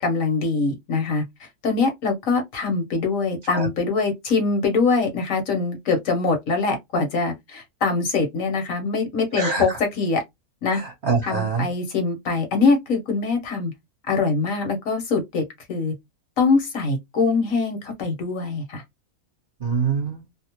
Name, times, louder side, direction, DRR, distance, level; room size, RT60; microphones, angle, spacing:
voice 1, 0.0-10.2 10.6-10.8 11.2-13.7 14.1-15.9 16.4-18.8, left 4 dB, 70° left, 1.3 m, -23 dB
voice 2, 9.3-9.6 10.7-11.7 19.6-20.2, right 5 dB, 40° right, 1.0 m, -24 dB
2.8 x 2.0 x 2.8 m
omnidirectional pair, 1.5 m